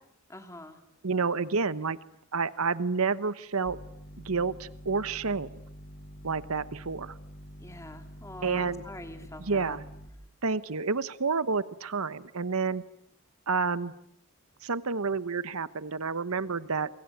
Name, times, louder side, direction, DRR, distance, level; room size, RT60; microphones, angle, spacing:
voice 1, 0.3-0.8 7.6-9.8, left 1 dB, 15° left, 6 dB, 3.0 m, -44 dB
voice 2, 1.0-2.0 2.3-3.8 4.2-5.5 6.2-7.1 8.4-8.8 9.4-9.8 10.4-12.8 13.5-13.9 14.6-16.9, right 4 dB, 75° right, 15 dB, 1.0 m, -29 dB
sound 1, 3.6-10.1, equal, 45° left, 5.5 m, -47 dB
27.0 x 24.0 x 9.2 m, 0.75 s
head